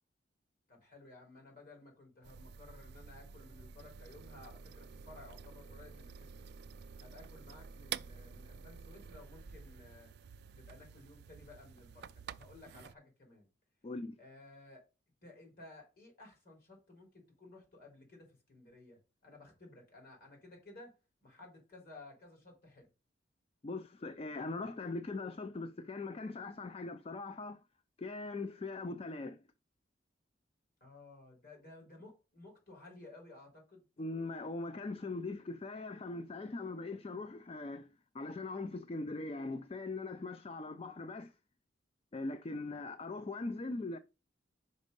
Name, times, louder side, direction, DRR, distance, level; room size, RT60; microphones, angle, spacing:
voice 1, 0.7-6.5 7.0-10.1 10.5-13.5 14.2-14.8 15.2-20.9 21.2-22.9 30.8-33.8 42.6-42.9, left 2 dB, 50° left, 3.5 m, -56 dB
sound 1, 2.2-12.9, right 7 dB, 60° right, 0.3 m, -49 dB
voice 2, 13.8-14.2 23.6-27.6 28.0-29.4 34.0-37.9 38.1-41.3 42.1-44.0, left 3 dB, 30° left, 0.4 m, -41 dB
5.3 x 5.2 x 5.2 m
head